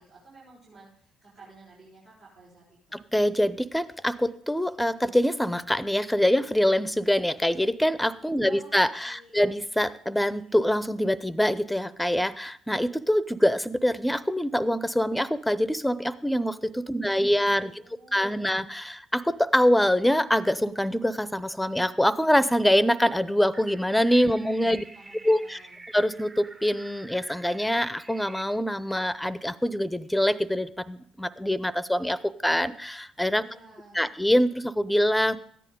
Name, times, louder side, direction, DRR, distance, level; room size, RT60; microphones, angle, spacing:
voice 1, 0.0-3.0 8.4-9.5 17.0-18.7 24.4-25.9 33.4-34.1, right 3 dB, 70° right, -9 dB, 4.8 m, -52 dB
voice 2, 2.9-17.7 18.1-24.8 25.2-25.6 25.9-33.4 33.9-35.4, equal, 5° left, 17 dB, 0.7 m, -24 dB
sound 1, 23.5-28.4, right 2 dB, 35° right, 1.2 m, -48 dB
14.0 x 10.0 x 3.8 m, 0.63 s
hypercardioid pair, 50°, 0 cm